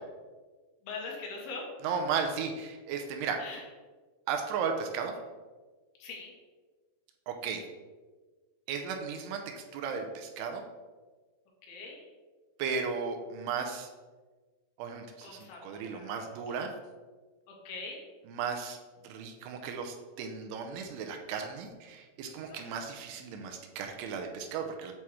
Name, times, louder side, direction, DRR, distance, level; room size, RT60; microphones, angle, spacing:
voice 1, 0.9-1.7 3.4-3.6 6.0-6.3 11.7-12.0 15.2-16.2 17.7-18.0 22.5-22.6, left 4 dB, 75° left, -1 dB, 2.9 m, -42 dB
voice 2, 1.8-3.4 4.3-5.1 7.3-7.6 8.7-9.4 9.7-10.6 12.6-13.9 14.8-16.7 18.3-18.8 19.0-24.9, right 6 dB, 80° right, 4 dB, 2.6 m, -35 dB
8.4 x 3.0 x 4.7 m, 1.3 s
omnidirectional pair, 4.9 m